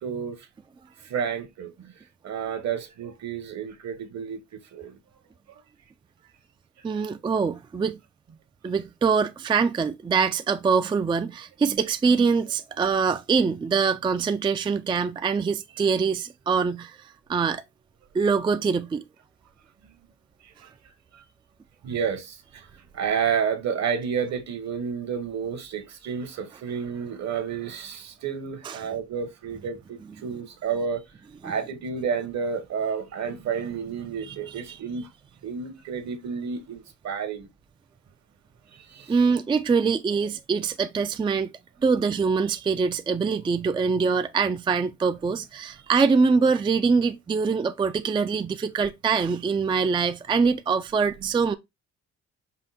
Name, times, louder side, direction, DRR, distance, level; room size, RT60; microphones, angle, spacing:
voice 1, 0.0-0.5 1.0-1.9 2.2-5.0 5.5-5.6 20.4-20.7 21.1-21.2 21.8-22.7 22.9-31.1 31.4-35.1 35.4-37.5 38.7-39.1, right 6 dB, 60° right, 1.2 m, -31 dB
voice 2, 6.8-8.0 8.6-17.6 18.1-19.0 28.6-28.8 31.4-31.5 34.3-34.4 34.7-34.8 39.1-41.5 41.8-51.5, right 5 dB, 15° right, 0.3 m, -24 dB
5.5 x 2.2 x 4.1 m
cardioid pair, 90°, 30 cm